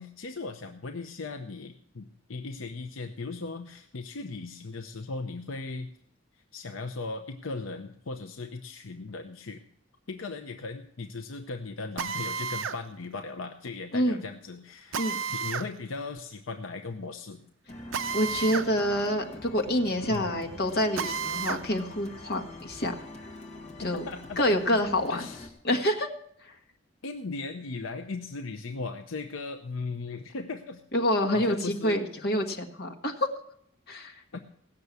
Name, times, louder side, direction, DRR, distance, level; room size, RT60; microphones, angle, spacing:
voice 1, 0.0-5.9 6.3-9.6 10.1-17.4 20.1-20.4 23.8-24.8 25.1-25.5 27.0-30.8 31.3-32.0 34.3-34.4, left 3 dB, 75° left, 6 dB, 0.7 m, -38 dB
Drill, 12.0-12.8 14.9-15.7 17.9-18.7 19.1-19.2 21.0-21.6, right 6 dB, 70° right, 0.6 m, -32 dB
sound 1, 17.7-25.5, left 2 dB, 35° left, 1.9 m, -45 dB
voice 2, 18.1-22.9 23.8-24.1 24.4-25.3 25.6-26.1 26.4-26.6 30.9-33.3 33.9-34.2, equal, 50° left, 3 dB, 1.5 m, -27 dB
16.5 x 6.8 x 8.2 m, 0.69 s
head